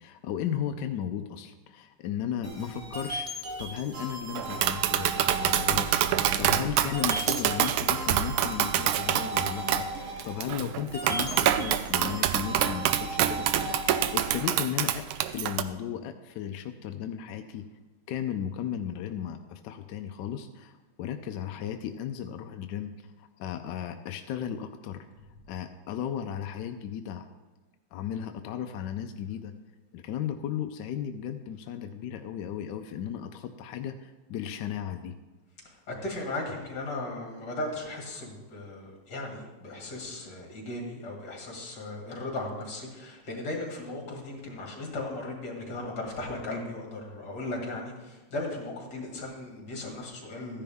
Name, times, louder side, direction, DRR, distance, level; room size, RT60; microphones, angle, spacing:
voice 1, 0.0-13.8 14.1-17.7 18.1-25.1 25.5-27.3 27.9-29.5 29.9-35.1, left 9 dB, 75° left, 7 dB, 1.0 m, -35 dB
sound 1, 2.4-14.4, right 1 dB, 30° right, 1.0 m, -37 dB
Tap, 4.4-15.6, right 11 dB, 80° right, 1.3 m, -26 dB
voice 2, 35.6-50.6, left 2 dB, 55° left, 0 dB, 2.8 m, -37 dB
14.0 x 10.0 x 3.5 m, 1.2 s
omnidirectional pair, 2.3 m